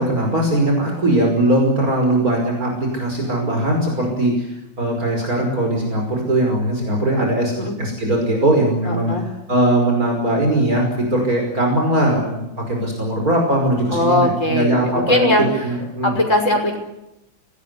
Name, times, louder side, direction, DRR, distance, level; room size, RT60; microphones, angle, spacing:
voice 1, 0.0-7.5 7.8-9.1 9.5-16.1, right 1 dB, 50° right, 1 dB, 6.0 m, -20 dB
voice 2, 8.8-9.3 13.9-15.4 16.0-16.8, left 1 dB, 40° left, 3 dB, 6.4 m, -19 dB
25.5 x 19.5 x 9.7 m, 0.89 s
omnidirectional pair, 2.0 m